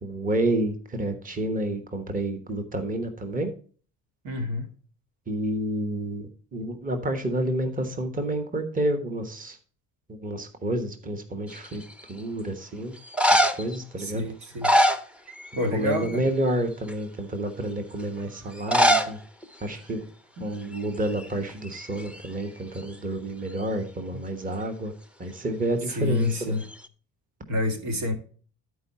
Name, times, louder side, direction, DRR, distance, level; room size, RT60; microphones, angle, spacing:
voice 1, 0.0-3.5 5.3-9.6 10.1-11.8 12.1-12.9 13.3-14.2 15.7-19.2 19.6-20.0 20.4-24.9 25.2-26.6, right 1 dB, 25° right, 1.3 m, -29 dB
voice 2, 4.2-4.7 14.0-14.7 15.6-16.2 26.0-26.7 27.5-28.1, left 2 dB, 85° right, 2.2 m, -28 dB
sound 1, 11.5-12.0 13.0-13.8 14.4-15.7 15.9-16.3 16.9-17.0 18.6-19.1 19.4-19.5 19.7-19.8 20.6-20.8 21.1-22.3 26.2-26.9, equal, 5° right, 0.6 m, -23 dB
12.5 x 4.7 x 4.2 m
cardioid pair, 120°, 33 cm